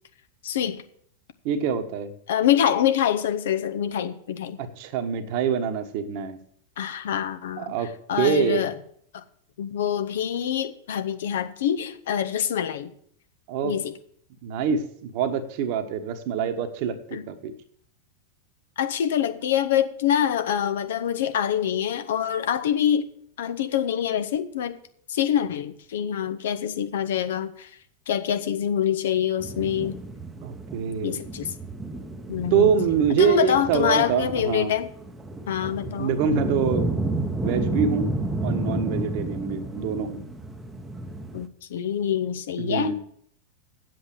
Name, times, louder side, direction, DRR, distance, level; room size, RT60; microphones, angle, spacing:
voice 1, 0.4-0.8 2.3-4.6 6.8-7.7 8.1-8.7 9.1-9.2 9.6-12.9 13.6-13.9 17.1-17.2 18.8-23.1 23.4-24.8 25.1-27.7 28.1-30.0 31.0-31.5 32.3-32.7 33.2-34.9 35.5-36.1 41.3-42.9, left 9 dB, 60° left, 0.8 m, -25 dB
voice 2, 1.4-2.1 4.6-6.4 7.6-7.9 8.2-8.6 13.5-13.7 14.4-17.5 30.4-31.2 32.5-34.7 36.0-36.9 37.4-38.1 38.4-40.2 42.6-42.9, right 7 dB, 45° right, 1.1 m, -25 dB
sound 1, 29.4-41.5, right 2 dB, 10° right, 0.9 m, -31 dB
8.4 x 7.8 x 6.4 m
figure-of-eight pair, 90°, 0 cm